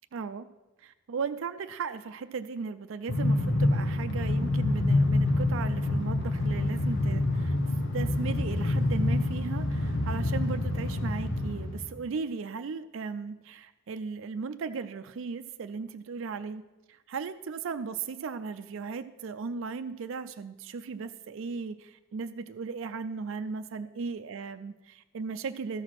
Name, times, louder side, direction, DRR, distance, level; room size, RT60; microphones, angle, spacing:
voice 1, 0.1-0.5 0.8-7.6 7.9-25.8, right 5 dB, 65° right, 9 dB, 0.4 m, -36 dB
Train, 3.1-12.0, left 2 dB, 60° left, 1.1 m, -27 dB
13.0 x 4.9 x 5.9 m, 1.0 s
head